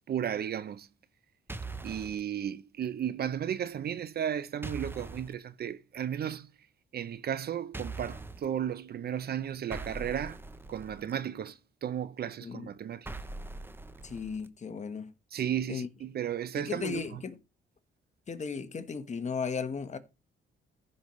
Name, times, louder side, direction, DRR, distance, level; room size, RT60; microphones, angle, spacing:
voice 1, 0.1-0.9 1.8-6.5 6.9-10.4 10.7-13.1 15.3-17.2, right 9 dB, 50° right, 0.7 m, -34 dB
sound 1, 1.5-2.2 4.6-5.3 7.7-8.5 9.7-11.1 13.1-14.5, right 3 dB, 10° right, 0.8 m, -41 dB
voice 2, 14.0-15.1 15.7-15.9 16.6-17.4 18.3-20.0, left 5 dB, 35° left, 1.3 m, -36 dB
15.0 x 5.5 x 3.2 m
cardioid pair, 90°, 20 cm